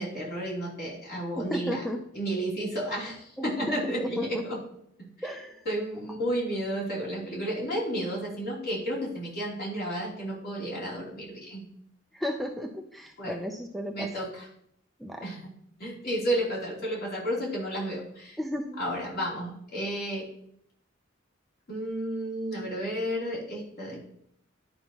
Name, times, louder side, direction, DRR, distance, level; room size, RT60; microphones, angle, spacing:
voice 1, 0.0-1.8 2.1-4.6 5.2-5.3 5.6-11.6 13.2-13.3 13.9-14.5 15.2-15.5 15.8-18.4 18.8-20.3 21.7-24.1, right 1 dB, 55° left, -5 dB, 3.2 m, -32 dB
voice 2, 1.4-2.0 3.4-4.4 5.2-5.6 12.1-14.1 15.0-15.2 18.4-18.8, left 1 dB, ahead, 3 dB, 0.5 m, -34 dB
11.0 x 5.3 x 2.9 m, 0.70 s
head